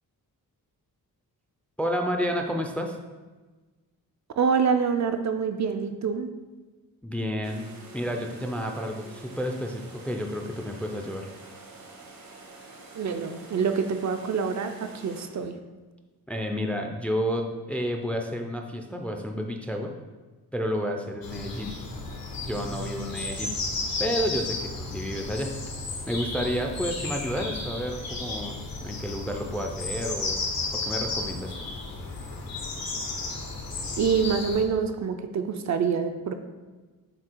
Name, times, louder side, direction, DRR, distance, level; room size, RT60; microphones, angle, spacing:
voice 1, 1.8-3.0 7.0-7.6 7.9-11.3 16.3-19.9 20.5-21.8 22.4-23.5 24.0-25.5 26.1-30.4 30.7-31.5, equal, 5° left, 3 dB, 0.4 m, -30 dB
voice 2, 4.4-6.3 13.0-15.6 34.0-36.3, right 6 dB, 55° right, 7 dB, 0.5 m, -26 dB
sound 1, 7.4-15.5, right 2 dB, 80° right, 1.3 m, -47 dB
sound 2, 21.2-34.6, left 3 dB, 80° left, 1.2 m, -33 dB
7.5 x 2.8 x 4.5 m, 1.3 s
wide cardioid pair, 145°, 35 cm